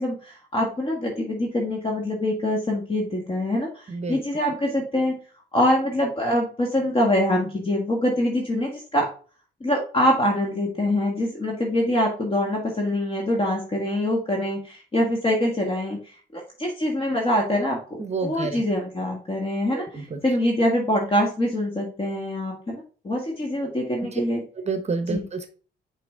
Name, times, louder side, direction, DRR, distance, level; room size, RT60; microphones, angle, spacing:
voice 1, 0.0-5.1 5.5-9.1 9.6-24.4 25.1-25.3, left 1 dB, 30° left, 0 dB, 1.5 m, -24 dB
voice 2, 3.9-4.2 18.0-18.6 19.7-20.2 24.1-24.2 24.6-25.5, right 4 dB, 35° right, 8 dB, 0.9 m, -29 dB
5.9 x 4.4 x 3.6 m, 0.39 s
cardioid pair, 90°, 20 cm